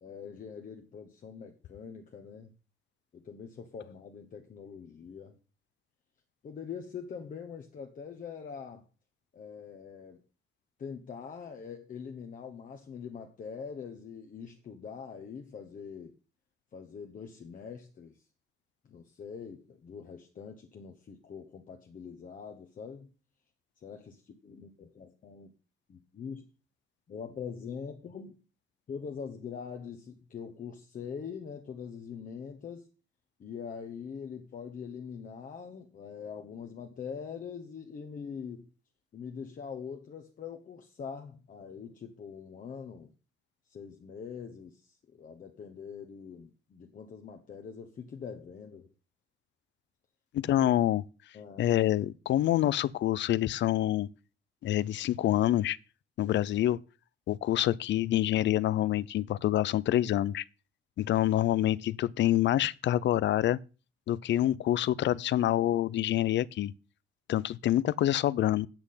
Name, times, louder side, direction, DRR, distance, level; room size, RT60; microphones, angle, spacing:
voice 1, 0.0-2.5 3.1-5.4 6.4-8.9 9.3-10.2 10.8-16.1 16.7-18.2 18.8-23.1 23.8-25.5 25.9-26.4 27.1-28.4 28.9-32.9 33.4-38.6 39.1-43.1 43.7-48.9 50.4-50.7 51.3-51.7, left 6 dB, 40° left, 1.1 m, -43 dB
voice 2, 50.3-51.0 51.6-54.1 54.6-55.8 56.2-56.8 57.3-60.4 61.0-63.6 64.1-66.7 67.3-68.7, left 13 dB, 60° left, 0.4 m, -26 dB
8.8 x 8.3 x 5.6 m
cardioid pair, 165°, 21 cm